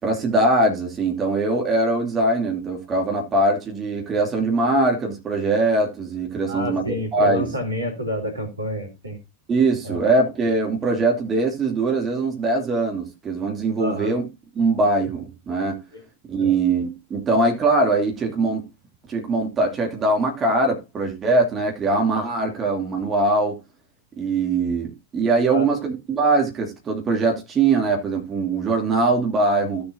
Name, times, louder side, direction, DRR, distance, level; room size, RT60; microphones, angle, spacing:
voice 1, 0.0-7.5 9.5-14.3 14.5-15.8 16.3-18.7 19.1-23.6 24.2-29.8, right 2 dB, 25° right, 2.8 m, -22 dB
voice 2, 6.5-9.2 9.8-10.0 13.8-14.1 15.9-16.0 16.4-16.5 25.4-25.7, left 1 dB, 80° right, 3.3 m, -29 dB
16.5 x 7.0 x 2.7 m
figure-of-eight pair, 90°, 0 cm